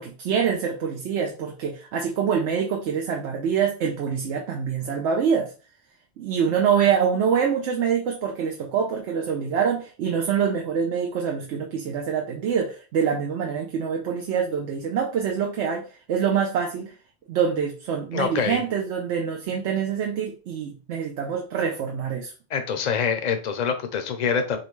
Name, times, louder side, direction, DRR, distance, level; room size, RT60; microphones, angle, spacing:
voice 1, 0.0-5.5 6.2-16.9 17.3-22.3, right 7 dB, 85° right, 2 dB, 0.9 m, -25 dB
voice 2, 18.1-18.6 22.5-24.6, left 6 dB, 45° left, 7 dB, 0.6 m, -25 dB
4.0 x 3.1 x 3.1 m, 0.36 s
omnidirectional pair, 1.1 m